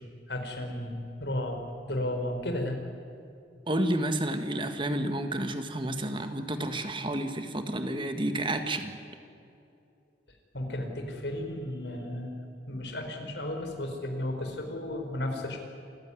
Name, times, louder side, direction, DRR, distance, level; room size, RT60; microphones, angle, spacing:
voice 1, 0.3-2.8 10.5-12.4 12.7-15.6, left 1 dB, 75° left, 4 dB, 4.4 m, -34 dB
voice 2, 3.7-9.0, right 1 dB, 30° right, 7 dB, 1.7 m, -30 dB
27.5 x 16.0 x 9.8 m, 2.5 s
head